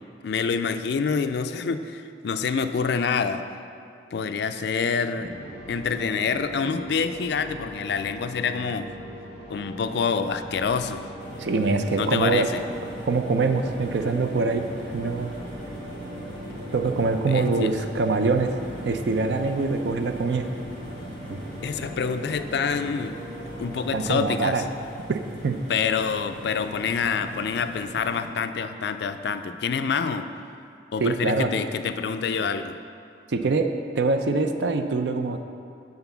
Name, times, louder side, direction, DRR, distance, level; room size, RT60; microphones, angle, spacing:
voice 1, 0.2-3.4 4.1-5.3 5.7-8.9 9.5-11.0 11.9-12.6 17.2-17.8 21.6-23.1 23.6-24.6 25.7-30.3 30.9-32.8, left 5 dB, 65° left, 9 dB, 0.4 m, -27 dB
sound 1, 5.1-24.5, equal, 30° right, 1.3 m, -40 dB
sound 2, 11.2-28.3, right 1 dB, 5° left, 1.6 m, -41 dB
voice 2, 11.4-12.5 13.0-14.6 14.9-15.3 16.7-18.5 18.8-20.4 21.3-21.4 23.9-24.6 25.1-25.6 31.0-31.5 33.3-33.7 33.9-35.4, right 3 dB, 70° right, 7 dB, 0.5 m, -24 dB
8.0 x 3.9 x 6.9 m, 2.4 s
head